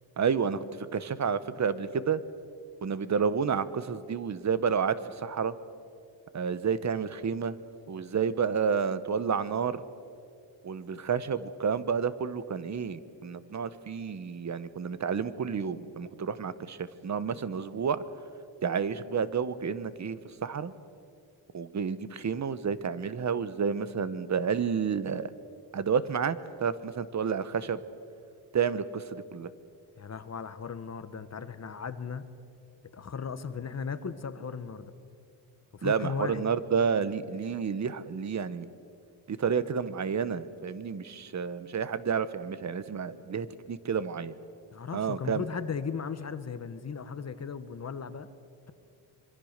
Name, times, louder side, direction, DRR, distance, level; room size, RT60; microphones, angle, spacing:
voice 1, 0.2-0.6 0.9-2.2 2.8-5.5 6.3-7.5 7.9-9.8 10.6-18.0 18.6-20.7 21.5-25.3 25.7-27.8 28.5-29.5 35.8-38.7 39.3-44.3 44.9-45.4, right 6 dB, 40° right, 15 dB, 1.1 m, -30 dB
voice 2, 30.0-32.2 32.9-34.9 35.7-36.5 44.7-48.3, left 6 dB, 35° left, 11 dB, 1.1 m, -36 dB
26.0 x 25.0 x 6.6 m, 2.4 s
wide cardioid pair, 140°, 43 cm